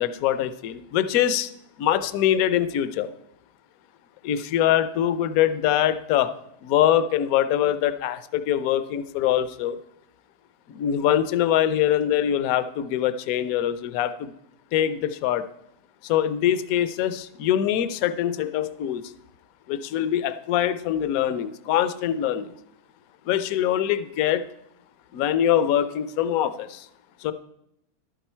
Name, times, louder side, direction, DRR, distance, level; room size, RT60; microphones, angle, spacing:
voice 1, 0.0-1.5 1.8-3.1 4.2-6.3 6.6-9.8 10.7-14.3 14.7-15.4 16.0-19.0 19.7-22.5 23.3-24.4 25.1-26.9 27.2-27.3, left 11 dB, 65° left, 13 dB, 1.0 m, -23 dB
11.5 x 9.0 x 4.4 m, 0.80 s
omnidirectional pair, 1.8 m